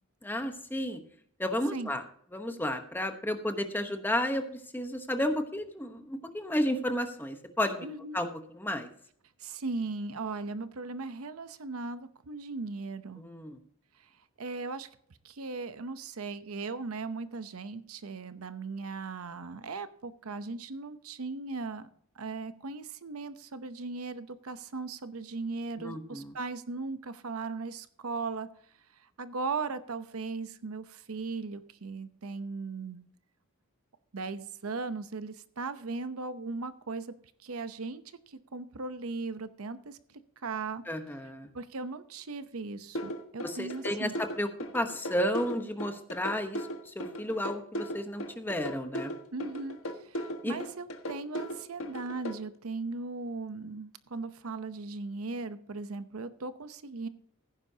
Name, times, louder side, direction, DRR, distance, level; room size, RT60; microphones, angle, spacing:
voice 1, 0.2-1.0 1.4-2.0 2.3-7.9 8.1-8.9 13.2-13.6 25.8-26.3 40.9-41.5 43.4-44.1 44.4-44.5 44.7-49.1 50.4-50.6, left 1 dB, 10° left, 6 dB, 1.0 m, -32 dB
voice 2, 7.8-8.2 9.4-13.2 14.4-14.9 15.2-21.9 22.2-28.5 29.2-33.0 34.1-37.1 37.4-40.0 40.4-40.8 41.5-44.2 49.3-57.1, right 3 dB, 85° right, 12 dB, 0.8 m, -38 dB
sound 1, 43.0-52.3, equal, 70° left, 1.5 m, -37 dB
16.0 x 9.6 x 2.8 m, 0.62 s
head